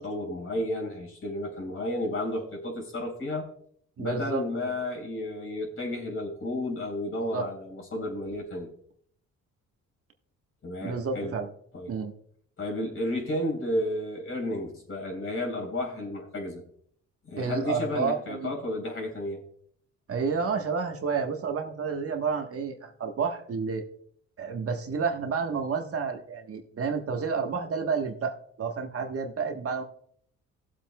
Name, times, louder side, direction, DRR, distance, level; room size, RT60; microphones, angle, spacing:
voice 1, 0.0-3.5 4.0-8.7 10.6-11.3 11.7-11.9 12.6-16.6 17.2-19.4, left 1 dB, 45° left, 1 dB, 3.9 m, -32 dB
voice 2, 4.0-4.4 7.3-7.4 10.8-11.5 11.9-12.1 17.4-18.5 20.1-23.8 24.4-29.8, right 5 dB, 50° right, 4 dB, 1.3 m, -30 dB
18.0 x 7.6 x 2.3 m, 0.65 s
cardioid pair, 90°, 30 cm